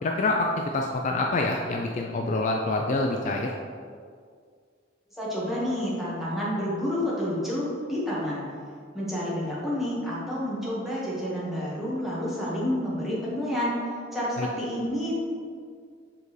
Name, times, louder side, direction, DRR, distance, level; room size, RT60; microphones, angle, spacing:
voice 1, 0.0-3.5 14.4-14.5, left 2 dB, 40° left, 1 dB, 0.4 m, -26 dB
voice 2, 5.2-8.4 8.9-13.7 14.1-15.1, equal, ahead, -8 dB, 1.5 m, -29 dB
7.4 x 4.0 x 3.2 m, 2.1 s
head